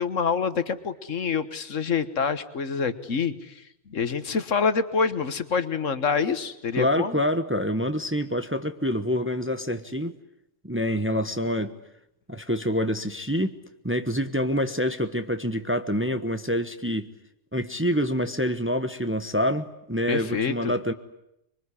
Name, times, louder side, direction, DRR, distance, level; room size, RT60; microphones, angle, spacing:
voice 1, 0.0-7.2 20.1-20.7, left 5 dB, 70° left, 12 dB, 1.7 m, -27 dB
voice 2, 6.8-10.1 10.6-11.7 12.3-13.6 13.8-17.1 17.5-20.9, equal, 10° right, 8 dB, 1.0 m, -26 dB
25.5 x 23.0 x 9.9 m, 0.83 s
omnidirectional pair, 1.3 m